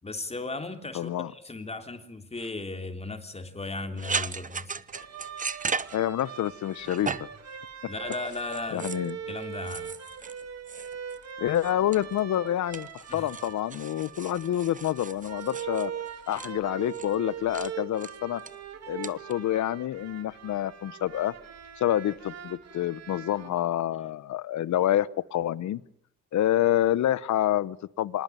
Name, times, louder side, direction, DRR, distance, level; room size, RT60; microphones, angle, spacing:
voice 1, 0.0-4.7 7.9-8.9 9.3-10.0 13.1-13.3, left 3 dB, 20° left, 6 dB, 3.4 m, -36 dB
voice 2, 0.9-1.3 5.9-7.3 8.7-9.2 11.4-15.9 16.3-18.4 18.9-21.3 21.8-25.8 26.3-28.2, left 12 dB, 70° left, 18 dB, 1.1 m, -27 dB
sound 1, 4.0-6.5 6.8-7.4 8.1-9.1 9.6-11.3 11.5-12.4 12.7-16.5 16.9-17.2 17.5-17.7 18.0-18.5 19.0-19.3, right 5 dB, 25° right, 1.0 m, -36 dB
sound 2, 4.9-23.5, right 8 dB, 60° right, 3.0 m, -41 dB
26.0 x 20.0 x 9.3 m, 0.73 s
cardioid pair, 90°, 30 cm